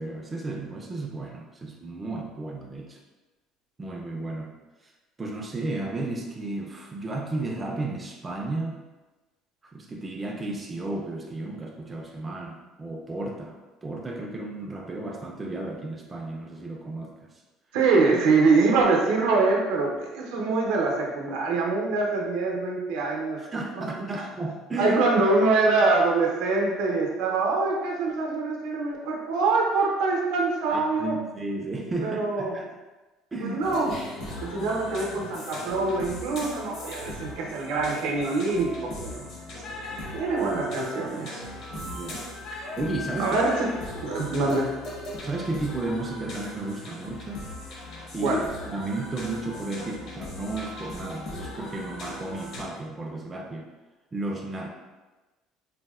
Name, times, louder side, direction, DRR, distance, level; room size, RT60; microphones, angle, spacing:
voice 1, 0.0-3.0 3.8-4.5 4.8-4.9 5.2-8.8 9.6-17.3 23.4-25.0 30.7-32.7 33.3-33.6 41.7-42.3 42.6-43.4 43.9-44.1 45.2-47.4 48.1-48.4 48.7-53.7 54.1-54.7, right 2 dB, 15° right, 0 dB, 0.3 m, -33 dB
voice 2, 17.7-23.4 24.8-31.1 32.0-32.5 33.4-33.9 34.4-39.2 40.1-41.4 43.2-43.7 44.0-44.7 48.2-48.4, right 3 dB, 80° right, -1 dB, 0.6 m, -24 dB
sound 1, 33.6-52.6, left 1 dB, 50° left, 0.6 m, -38 dB
4.0 x 2.0 x 2.3 m, 1.2 s
cardioid pair, 145°, 0 cm